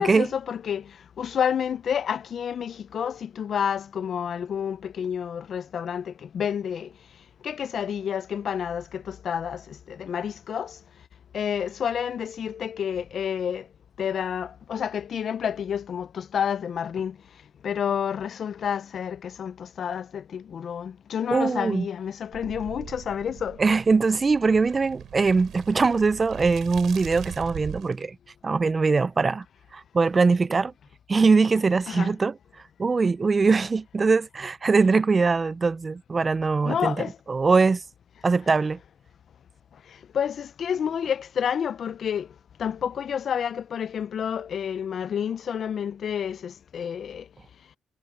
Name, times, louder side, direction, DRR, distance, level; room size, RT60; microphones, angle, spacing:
voice 1, 0.0-6.9 7.4-10.8 11.3-13.7 14.0-17.2 17.6-23.6 31.9-32.1 36.6-37.2 40.1-42.3 42.6-47.3, left 8 dB, 55° left, 0.5 m, -29 dB
voice 2, 21.3-21.9 23.6-28.2 28.4-29.4 29.7-30.7 31.1-32.4 32.8-37.8 38.2-38.8, right 4 dB, 30° right, 0.4 m, -22 dB
sound 1, 22.3-28.0, right 10 dB, 70° right, 5.1 m, -41 dB
cardioid pair, 90°, 0 cm